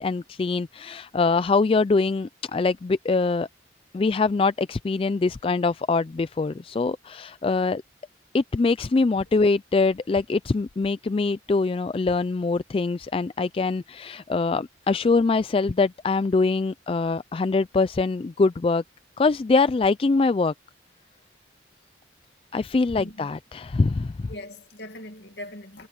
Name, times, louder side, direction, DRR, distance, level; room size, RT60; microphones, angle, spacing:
voice 1, 0.0-3.5 3.9-7.8 8.3-18.8 19.2-20.5 22.5-24.3, left 3 dB, 30° left, 0.3 m, -23 dB
voice 2, 22.9-23.3 24.3-25.9, left 1 dB, 60° left, 2.2 m, -40 dB
head